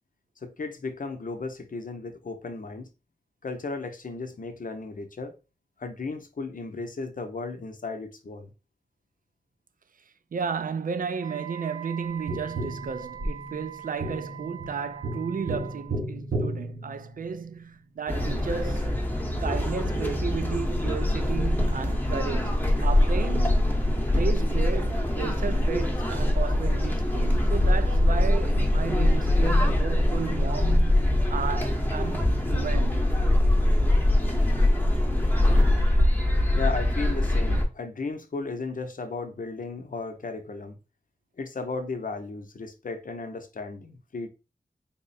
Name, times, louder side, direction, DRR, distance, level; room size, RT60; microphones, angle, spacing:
voice 1, 0.4-2.9 3.4-5.4 5.8-8.5 36.5-40.8 41.4-44.3, left 3 dB, 60° left, 0.6 m, -35 dB
voice 2, 10.3-19.0 19.4-23.7 24.2-33.1, right 6 dB, 60° right, 0.4 m, -33 dB
Wind instrument woodwind instrument, 11.2-16.0, right 10 dB, 25° right, 0.7 m, -42 dB
Tap, 12.3-17.6 20.2-20.3, right 1 dB, 85° right, 0.9 m, -34 dB
sound 1, 18.1-37.6, left 1 dB, 10° left, 0.9 m, -23 dB
3.7 x 2.0 x 4.1 m
wide cardioid pair, 60°, 16 cm